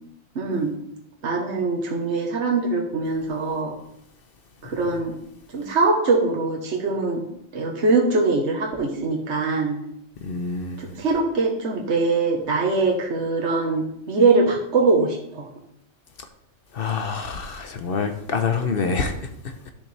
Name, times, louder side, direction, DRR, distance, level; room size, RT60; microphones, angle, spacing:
voice 1, 0.3-0.7 1.2-3.8 4.6-5.2 5.5-7.3 7.5-9.8 10.8-15.5, right 3 dB, 70° right, 1.5 m, -22 dB
voice 2, 10.2-10.9 16.7-19.7, left 5 dB, 55° left, 1.0 m, -27 dB
12.0 x 6.7 x 3.4 m
omnidirectional pair, 1.2 m